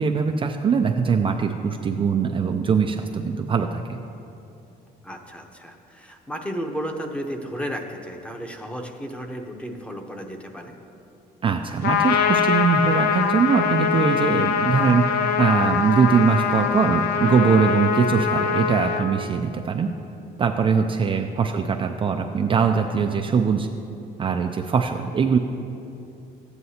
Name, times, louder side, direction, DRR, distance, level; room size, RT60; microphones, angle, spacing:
voice 1, 0.0-4.0 11.4-15.0 15.4-19.9 20.4-23.7 24.2-25.4, right 6 dB, 30° right, 4 dB, 0.4 m, -21 dB
voice 2, 5.0-10.7 21.4-21.5, equal, 5° left, 3 dB, 0.8 m, -33 dB
Trumpet, 11.8-19.1, left 7 dB, 75° left, 0.6 m, -23 dB
13.5 x 9.3 x 2.8 m, 2.8 s
cardioid pair, 110°, 17 cm